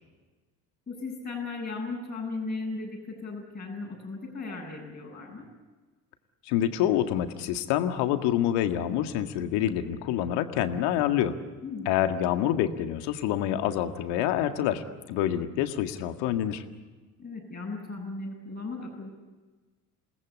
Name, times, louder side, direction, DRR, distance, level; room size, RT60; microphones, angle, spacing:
voice 1, 0.9-5.5 11.6-12.0 17.2-19.1, left 3 dB, 20° left, -4 dB, 7.9 m, -36 dB
voice 2, 6.5-11.4 11.9-16.6, left 11 dB, 60° left, 8 dB, 2.0 m, -27 dB
28.5 x 19.5 x 8.5 m, 1.3 s
figure-of-eight pair, 65°, 46 cm